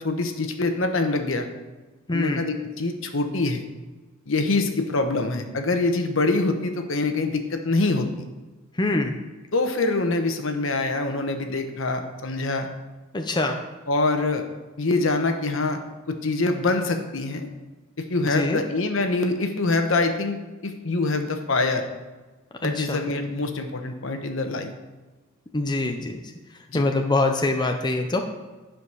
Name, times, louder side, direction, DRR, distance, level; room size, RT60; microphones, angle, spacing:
voice 1, 0.0-1.5 2.1-3.6 4.3-8.1 9.5-12.7 13.9-14.4 14.8-15.8 16.1-17.5 18.0-20.4 20.6-21.8 22.6-24.7 26.7-26.8, left 3 dB, 70° left, 6 dB, 1.1 m, -24 dB
voice 2, 2.1-2.5 8.8-9.2 13.1-13.6 18.2-18.6 22.6-23.1 25.5-26.2 26.7-28.2, left 2 dB, 20° left, 4 dB, 0.6 m, -24 dB
9.9 x 5.1 x 6.3 m, 1.2 s
head